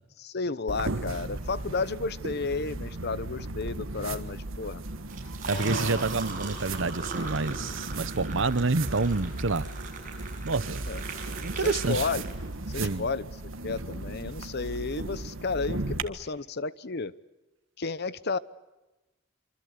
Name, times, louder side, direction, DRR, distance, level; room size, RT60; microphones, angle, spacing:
voice 1, 0.2-4.8 5.4-6.0 10.9-11.0 11.5-12.3 12.7-13.3 13.6-17.1 17.8-18.4, left 4 dB, 55° left, 0.9 m, -32 dB
sound 1, 0.7-16.0, right 2 dB, 90° right, 1.6 m, -36 dB
Liquid, 5.0-12.7, right 4 dB, 45° right, 7.6 m, -40 dB
voice 2, 5.5-9.7 10.4-10.8 11.4-12.1 12.8-13.1, right 3 dB, 65° right, 1.0 m, -28 dB
26.5 x 24.5 x 8.2 m
head